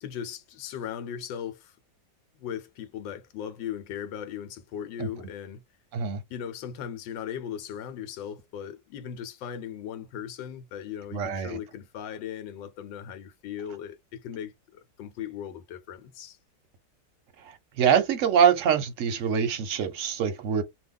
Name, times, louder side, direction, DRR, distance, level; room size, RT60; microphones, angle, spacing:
voice 1, 0.0-1.7 2.4-5.6 6.3-16.4, left 9 dB, 85° left, 1.4 m, -38 dB
voice 2, 11.1-11.6 17.5-20.6, right 8 dB, 55° right, 0.9 m, -24 dB
2.9 x 2.2 x 3.6 m
omnidirectional pair, 2.0 m